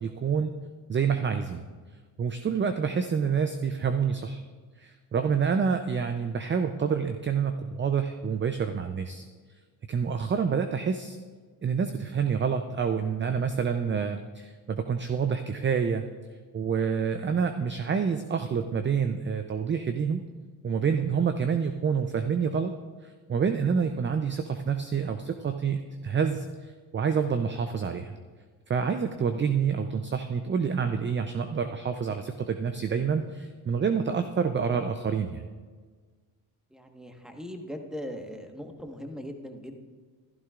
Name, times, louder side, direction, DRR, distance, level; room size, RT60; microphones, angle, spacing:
voice 1, 0.0-0.5 0.9-1.7 2.2-4.4 4.8-9.2 9.9-11.2 11.6-16.0 16.5-20.2 20.6-22.7 23.3-28.1 28.7-35.4, right 6 dB, 25° right, 8 dB, 0.6 m, -27 dB
voice 2, 36.7-39.8, equal, ahead, 4 dB, 1.4 m, -39 dB
14.5 x 12.0 x 2.5 m, 1.5 s
supercardioid pair, 70°, 45 cm